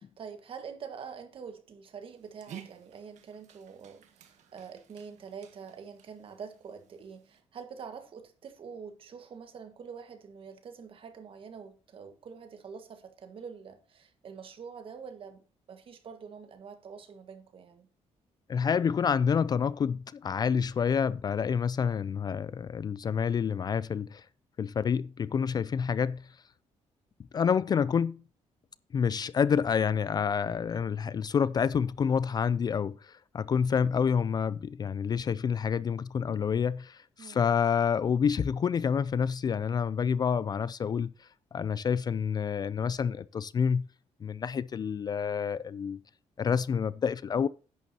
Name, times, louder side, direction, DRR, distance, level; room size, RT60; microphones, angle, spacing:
voice 1, 0.0-15.4 15.7-17.9 37.2-37.5, right 6 dB, 50° right, 1.6 m, -45 dB
Dog, 2.1-7.4, right 9 dB, 85° right, 1.7 m, -53 dB
voice 2, 18.5-24.3 24.6-26.3 27.3-28.2 28.9-43.9 44.2-46.0 46.4-47.5, left 7 dB, 35° left, 0.3 m, -28 dB
10.5 x 9.4 x 2.8 m
cardioid pair, 140°, 12 cm